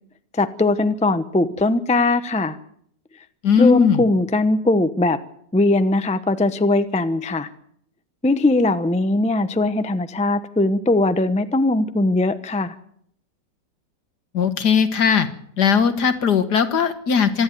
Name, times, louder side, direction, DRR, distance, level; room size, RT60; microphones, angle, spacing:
voice 1, 0.3-2.6 3.6-5.2 5.5-7.5 8.2-12.7, left 2 dB, 5° left, 11 dB, 0.6 m, -20 dB
voice 2, 3.4-4.0 14.3-15.3 15.6-17.4, left 6 dB, 65° left, 10 dB, 2.1 m, -18 dB
25.5 x 11.0 x 9.3 m, 0.68 s
omnidirectional pair, 1.9 m